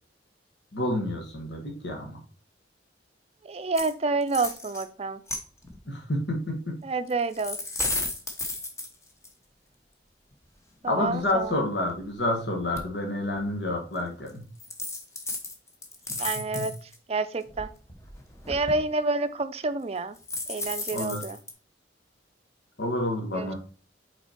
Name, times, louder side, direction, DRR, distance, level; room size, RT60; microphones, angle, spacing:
voice 1, 0.7-2.2 5.9-6.7 10.9-14.4 16.1-16.7 20.9-21.2 22.8-23.6, left 1 dB, 75° left, 1 dB, 1.5 m, -29 dB
voice 2, 3.4-5.2 6.8-7.6 10.8-11.5 16.2-16.7 17.1-17.7 18.5-20.2 20.5-21.4 23.3-23.5, right 3 dB, 35° right, 11 dB, 0.5 m, -28 dB
sound 1, 3.7-3.9 4.2-4.8 5.3-5.8 7.1-9.3 10.4-10.5 11.0-12.2 12.8-12.9 13.4-13.5 14.3-14.4 14.6-17.0 17.5-18.9 20.2-21.5, left 2 dB, 15° left, 0.9 m, -34 dB
5.5 x 4.2 x 4.4 m, 0.38 s
head